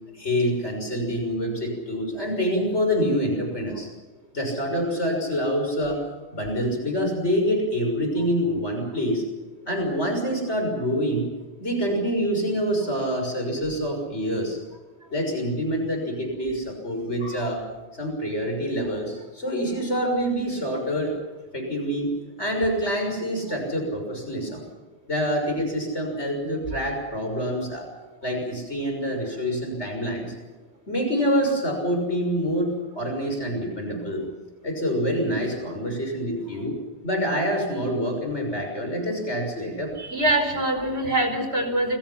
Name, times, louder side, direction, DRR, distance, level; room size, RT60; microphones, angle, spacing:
voice 1, 0.1-3.9 4.3-6.0 6.3-9.2 9.7-11.3 11.6-14.6 15.1-17.6 17.9-21.1 21.5-22.1 22.4-24.7 25.1-27.9 28.2-30.3 30.9-34.3 34.6-36.8 37.0-39.9, equal, 90° left, 3 dB, 6.8 m, -26 dB
voice 2, 40.0-42.0, right 1 dB, 70° right, 6 dB, 5.2 m, -24 dB
29.0 x 22.0 x 5.9 m, 1.2 s
omnidirectional pair, 1.1 m